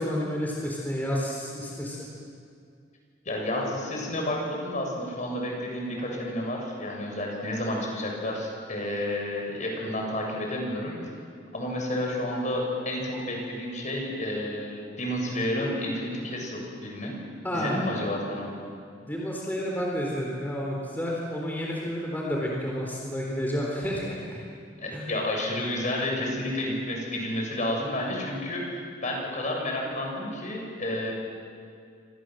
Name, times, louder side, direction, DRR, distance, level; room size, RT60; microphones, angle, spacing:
voice 1, 0.0-2.1 17.4-17.8 19.0-24.4 24.9-25.1, equal, 10° left, -3 dB, 3.8 m, -30 dB
voice 2, 3.3-10.9 11.5-17.1 17.5-18.5 24.8-31.1, left 1 dB, 40° left, 0 dB, 7.2 m, -30 dB
28.5 x 26.0 x 7.8 m, 2.3 s
head